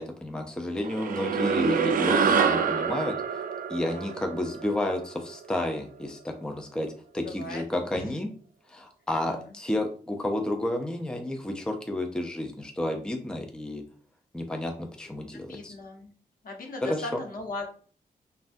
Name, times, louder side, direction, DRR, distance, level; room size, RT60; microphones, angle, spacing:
voice 1, 0.0-3.1 3.7-8.3 8.7-13.8 14.3-15.7 16.8-17.2, left 1 dB, 5° left, 2 dB, 0.5 m, -31 dB
sound 1, 0.8-5.5, right 6 dB, 65° right, 0.4 m, -26 dB
voice 2, 7.2-7.6 7.9-8.1 9.2-9.6 15.3-16.1 16.4-17.7, left 2 dB, 70° left, 1 dB, 0.9 m, -38 dB
3.2 x 2.2 x 2.6 m, 0.42 s
cardioid pair, 85°, 15 cm